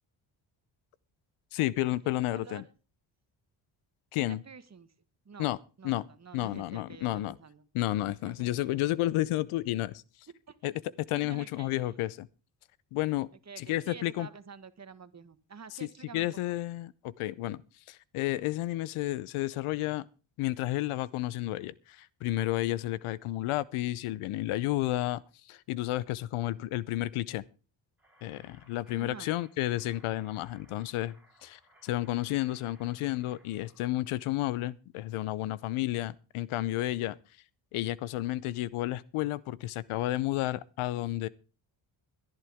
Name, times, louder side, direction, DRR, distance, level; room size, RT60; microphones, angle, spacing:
voice 1, 1.5-2.6 4.1-4.4 5.4-5.6 5.8-6.0 6.3-7.4 7.7-10.0 10.6-10.7 11.1-12.3 12.9-13.3 13.6-14.3 16.1-17.6 17.9-20.1 20.4-25.2 25.5-27.4 28.2-31.1 31.4-37.2 37.7-41.3, left 16 dB, 85° left, 0.7 m, -31 dB
voice 2, 2.3-2.7 4.2-4.9 5.2-5.5 5.8-7.7 8.2-8.5 10.5-10.6 11.1-11.9 13.4-16.6 28.9-29.3, right 5 dB, 35° right, 1.4 m, -48 dB
sound 1, 28.0-33.9, right 1 dB, 5° right, 5.0 m, -63 dB
21.0 x 11.0 x 3.5 m
cardioid pair, 70°, 49 cm